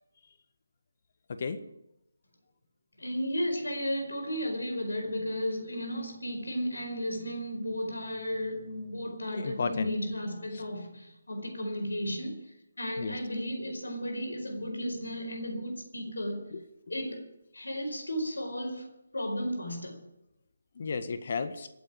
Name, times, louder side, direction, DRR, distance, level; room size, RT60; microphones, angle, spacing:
voice 1, 1.3-1.6 9.3-9.9 10.5-10.6 13.0-13.2 16.5-16.6 20.7-21.7, left 5 dB, 50° left, 1.7 m, -33 dB
voice 2, 3.0-12.4 12.8-16.6 16.9-17.3 17.5-18.9 19.1-20.0, equal, 75° left, 4.8 m, -34 dB
26.0 x 9.3 x 4.9 m
figure-of-eight pair, 155°, 0 cm